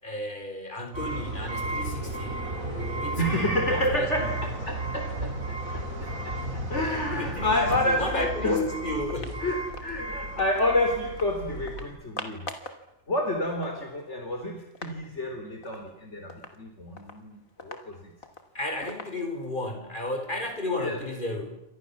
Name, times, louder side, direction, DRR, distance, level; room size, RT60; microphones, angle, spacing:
voice 1, 0.0-2.4 2.7-4.3 7.1-9.5 18.5-21.6, left 1 dB, 35° left, 4 dB, 5.7 m, -33 dB
sound 1, 0.9-11.8, right 1 dB, 90° right, 5.5 m, -34 dB
voice 2, 3.2-5.8 6.3-6.4 6.7-8.7 9.4-12.4 13.1-18.1 20.8-21.0, left 1 dB, 55° left, 3 dB, 4.0 m, -29 dB
sound 2, 9.1-10.7 11.1-11.3 11.7-12.8 13.2-13.3 13.4-15.0 15.3-15.4 15.6-15.9 16.3-19.6, left 3 dB, 90° left, 3.2 m, -43 dB
29.5 x 26.5 x 7.3 m, 0.86 s
omnidirectional pair, 1.4 m